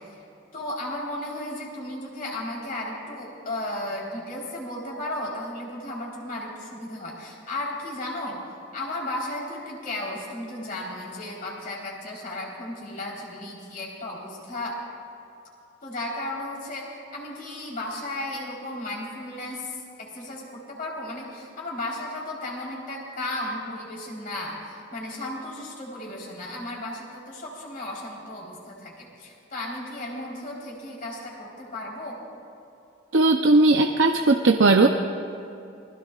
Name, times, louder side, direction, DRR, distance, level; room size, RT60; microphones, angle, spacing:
voice 1, 0.5-14.8 15.8-32.2, left 1 dB, 45° left, -3 dB, 3.9 m, -34 dB
voice 2, 33.1-34.9, right 2 dB, 65° right, 4 dB, 0.7 m, -18 dB
27.5 x 20.5 x 2.4 m, 2.8 s
head